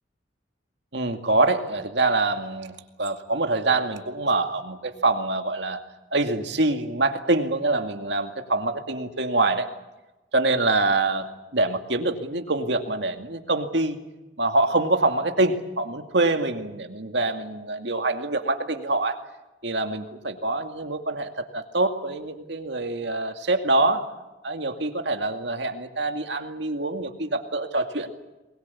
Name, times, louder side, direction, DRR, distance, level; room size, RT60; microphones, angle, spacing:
voice 1, 0.9-5.8 6.1-9.7 10.3-14.0 14.4-19.2 19.6-24.1 24.4-28.1, right 2 dB, 65° right, 6 dB, 2.3 m, -25 dB
22.5 x 21.5 x 8.5 m, 1.1 s
head